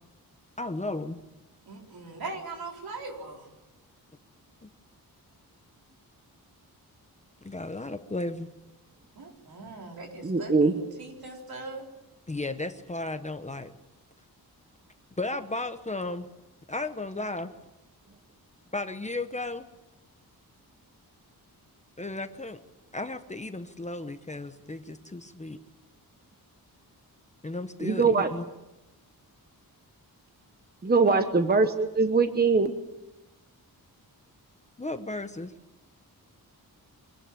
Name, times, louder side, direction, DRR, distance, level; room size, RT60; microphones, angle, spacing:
voice 1, 0.6-1.2 4.6-4.7 7.4-8.5 12.3-13.7 15.2-16.3 16.7-17.5 18.7-19.7 22.0-22.6 22.9-25.6 27.4-28.5 31.0-31.2 34.8-35.5, left 2 dB, 20° left, 9 dB, 0.9 m, -34 dB
voice 2, 1.7-3.4 9.2-11.8, right 3 dB, 70° right, 1 dB, 4.6 m, -40 dB
voice 3, 10.2-10.8 27.8-28.3 30.8-32.7, right 4 dB, 25° right, 8 dB, 1.1 m, -22 dB
25.0 x 18.5 x 8.9 m, 1.0 s
wide cardioid pair, 175°, 37 cm